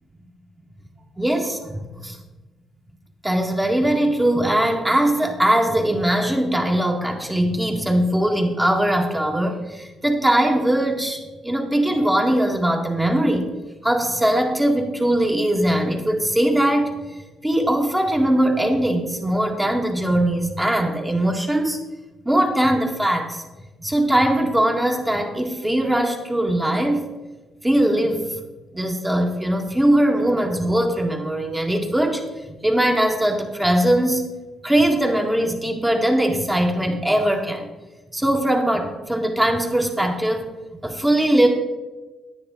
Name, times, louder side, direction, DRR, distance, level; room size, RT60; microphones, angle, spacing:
voice 1, 1.2-2.2 3.2-13.5 13.8-16.9 17.4-21.8 22.3-23.4 23.8-27.0 27.6-28.4 28.7-32.2 32.6-34.3 34.6-37.7 38.1-40.5 40.8-41.5, right 1 dB, 10° right, 2 dB, 1.8 m, -20 dB
10.0 x 9.8 x 4.0 m, 1.2 s
cardioid pair, 90°, 0 cm